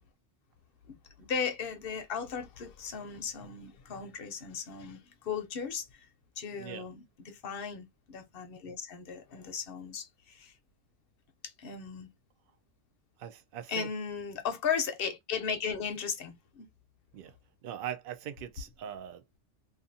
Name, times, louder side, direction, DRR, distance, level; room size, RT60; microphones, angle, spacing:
voice 1, 0.9-6.1 6.4-10.5 11.4-12.1 13.7-16.7, left 6 dB, 55° left, 0.7 m, -36 dB
voice 2, 13.2-13.9 17.1-17.4 17.6-19.4, right 10 dB, 60° right, 0.6 m, -41 dB
2.5 x 2.4 x 2.6 m
omnidirectional pair, 1.3 m